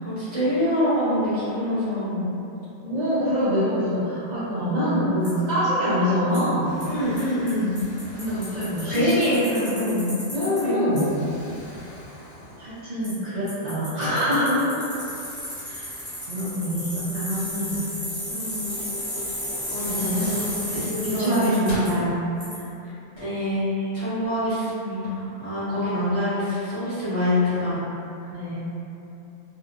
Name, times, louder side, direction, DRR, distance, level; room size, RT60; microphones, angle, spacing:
voice 1, 0.0-2.3 6.8-7.7 8.9-9.4 9.7-10.1 10.6-11.0 18.3-18.7 19.7-21.7 23.2-23.6 23.9-27.8, left 1 dB, 30° right, -15 dB, 1.2 m, -25 dB
voice 2, 2.8-6.8 8.1-9.8 10.3-11.1 12.6-14.9 15.7-15.8 16.3-17.8 19.8-20.5 21.0-22.1 27.0-27.1 28.3-28.6, equal, 60° right, -11 dB, 0.4 m, -25 dB
Bicycle, 5.2-5.3 6.3-6.4 6.8-6.9 7.2-7.3 7.5-7.6 7.8-10.6 11.0-11.1 13.0-13.1 13.5-21.9 22.4-22.5, equal, 10° left, 0.7 m, -33 dB
Explosion, 6.6-9.4 10.0-10.2 10.9-13.2 13.5-13.6 14.9-17.5 18.9-19.0 19.5-22.0, left 1 dB, 75° left, 0.9 m, -44 dB
2.7 x 2.1 x 2.4 m, 2.8 s
omnidirectional pair, 1.3 m